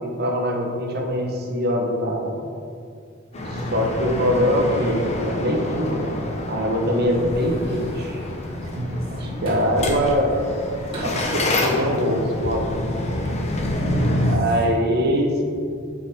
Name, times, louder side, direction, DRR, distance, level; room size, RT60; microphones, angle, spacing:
voice 1, 0.0-2.3 3.5-6.2 6.5-8.2 9.4-10.6 10.9-12.8 14.3-15.4, equal, 55° right, 1 dB, 1.1 m, -23 dB
sound 1, 3.3-14.4, left 1 dB, 35° left, 0.8 m, -28 dB
voice 2, 3.4-3.9 8.6-9.4 13.7-14.5, right 1 dB, 70° right, 0 dB, 0.9 m, -30 dB
sound 2, 7.3-9.9 10.3-12.4 12.8-13.1, right 1 dB, 30° right, 1.9 m, -42 dB
7.8 x 5.2 x 4.3 m, 2.4 s
head